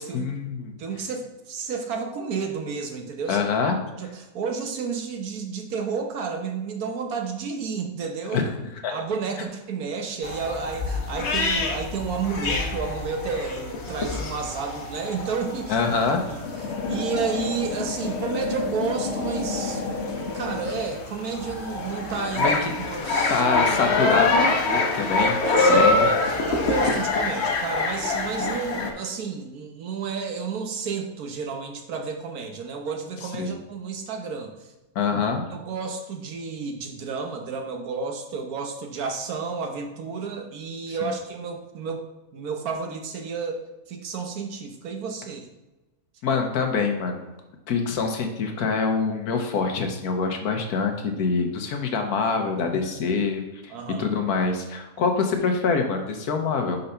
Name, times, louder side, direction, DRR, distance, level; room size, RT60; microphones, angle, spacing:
voice 1, 0.1-0.8 3.3-3.8 8.3-8.4 8.8-8.9 15.7-16.2 22.4-22.7 23.3-26.1 33.4-33.5 34.9-35.4 41.0-41.1 46.2-47.3 47.7-53.7 54.0-56.8, left 5 dB, 85° left, 4 dB, 1.4 m, -25 dB
voice 2, 0.8-3.4 4.0-8.4 8.9-15.8 16.3-22.5 22.9-23.4 25.2-34.5 35.5-42.0 42.3-43.6 43.9-45.5 53.7-54.1, right 5 dB, 75° right, 3 dB, 1.4 m, -31 dB
sound 1, 10.2-28.9, left 3 dB, 50° left, 1.0 m, -25 dB
5.6 x 3.9 x 5.5 m, 1.1 s
omnidirectional pair, 1.6 m